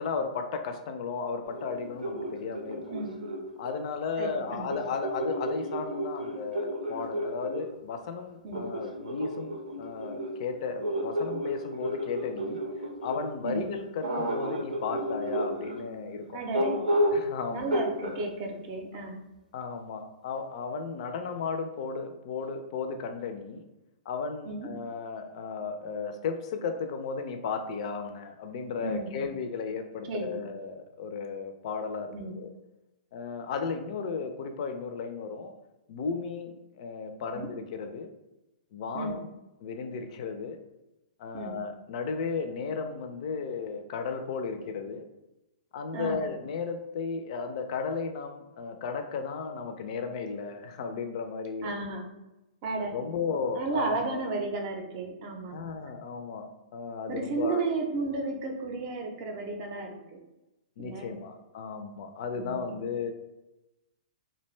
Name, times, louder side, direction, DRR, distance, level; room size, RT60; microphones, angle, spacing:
voice 1, 0.0-2.8 3.6-12.6 13.0-16.4 17.1-17.8 19.5-23.6 24.1-32.5 33.1-35.5 35.9-38.1 38.7-39.3 39.6-40.6 41.2-45.0 45.7-51.8 52.9-54.2 55.5-57.6 60.8-63.1, left 5 dB, 50° left, 7 dB, 0.4 m, -35 dB
sound 1, 1.5-3.9 4.7-7.7 8.5-13.3 14.0-15.8 16.5-17.3 17.7-18.2, equal, 90° right, 0.7 m, -32 dB
voice 2, 4.2-4.8 8.4-8.7 13.4-13.7 16.3-16.8 17.5-19.2 24.4-24.7 28.8-29.1 30.1-30.4 32.1-32.4 37.3-37.5 38.9-39.2 41.3-41.6 45.9-46.2 51.6-52.0 52.6-53.0 53.6-55.6 57.1-59.9 60.8-61.2 62.3-62.8, right 3 dB, 40° right, 3 dB, 0.5 m, -33 dB
2.4 x 2.2 x 3.1 m, 0.98 s
hypercardioid pair, 120°, 4 cm